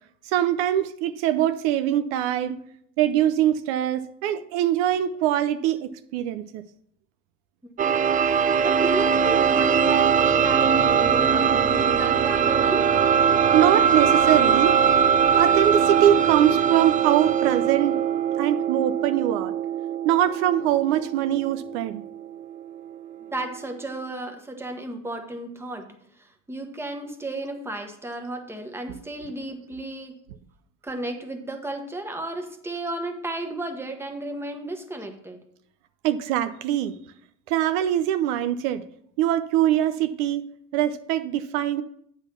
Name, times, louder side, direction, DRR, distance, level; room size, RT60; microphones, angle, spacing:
voice 1, 0.3-2.6 3.0-6.6 13.5-14.8 15.3-18.0 18.4-19.5 20.0-22.0 36.0-36.9 37.5-38.8 39.2-40.4 40.7-41.8, right 11 dB, 80° right, 10 dB, 0.6 m, -23 dB
sound 1, 7.8-23.4, right 7 dB, 25° right, 0.4 m, -21 dB
voice 2, 8.6-12.9 23.3-30.2 30.8-35.4, right 1 dB, 5° right, 4 dB, 1.1 m, -34 dB
8.1 x 4.0 x 6.7 m, 0.69 s
supercardioid pair, 110°, 32 cm